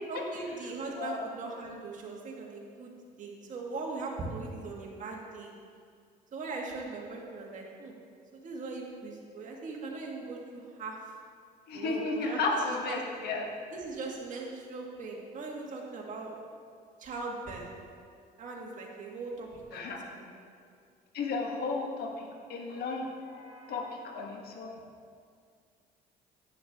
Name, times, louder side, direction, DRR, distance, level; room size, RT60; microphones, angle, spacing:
voice 1, 0.1-2.9 3.2-5.5 6.3-8.0 8.3-11.0 11.7-12.4 12.7-13.0 13.7-16.4 17.0-17.7 18.4-20.3, right 3 dB, 50° right, -2 dB, 1.9 m, -40 dB
voice 2, 1.0-1.3 11.7-13.4 19.7-20.0 21.1-24.8, left 3 dB, 70° left, 1 dB, 1.5 m, -34 dB
10.0 x 8.6 x 3.7 m, 2.2 s
cardioid pair, 110°, 17 cm